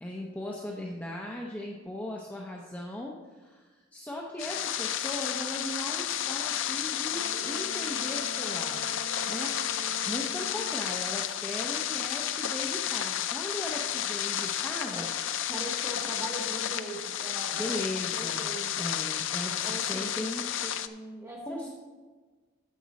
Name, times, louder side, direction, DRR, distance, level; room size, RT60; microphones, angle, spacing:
voice 1, 0.0-9.0 9.3-15.1 17.5-18.5 18.8-20.5 21.5-21.7, left 1 dB, 10° left, -2 dB, 0.7 m, -38 dB
sound 1, 4.4-20.9, left 10 dB, 65° left, 0.4 m, -32 dB
sound 2, 7.0-10.7, right 1 dB, 45° left, 2.3 m, -42 dB
voice 2, 15.5-17.8 18.1-18.7 19.5-20.3 20.6-21.7, right 1 dB, 15° right, -2 dB, 1.3 m, -40 dB
10.0 x 7.5 x 4.1 m, 1.3 s
head